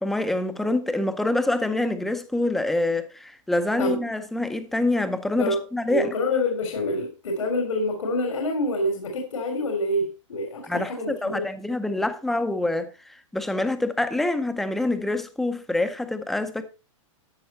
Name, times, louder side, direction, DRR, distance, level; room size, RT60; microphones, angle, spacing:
voice 1, 0.0-6.2 10.7-16.6, left 2 dB, ahead, 0.5 m, -26 dB
voice 2, 5.9-11.5, left 1 dB, 85° left, 3.2 m, -26 dB
12.5 x 6.5 x 4.3 m
hypercardioid pair, 170°, 17 cm